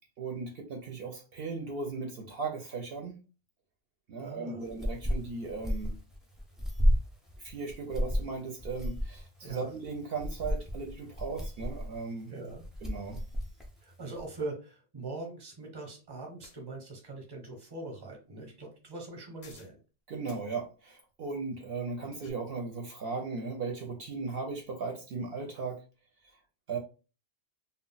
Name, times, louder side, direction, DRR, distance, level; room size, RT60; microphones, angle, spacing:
voice 1, 0.2-3.2 4.1-5.9 7.4-12.3 12.8-13.2 20.1-25.8 26.2-26.4 26.7-26.8, right 4 dB, 65° right, 0.7 m, -37 dB
voice 2, 4.2-4.6 9.4-9.7 12.3-12.6 13.8-19.8 22.0-22.1, right 3 dB, 25° right, 0.8 m, -42 dB
sound 1, 4.6-14.4, equal, ahead, 0.4 m, -32 dB
sound 2, 16.4-16.6 19.4-19.8 20.2-20.4 21.9-22.3, left 5 dB, 55° left, 0.5 m, -55 dB
2.3 x 2.0 x 3.8 m
omnidirectional pair, 1.1 m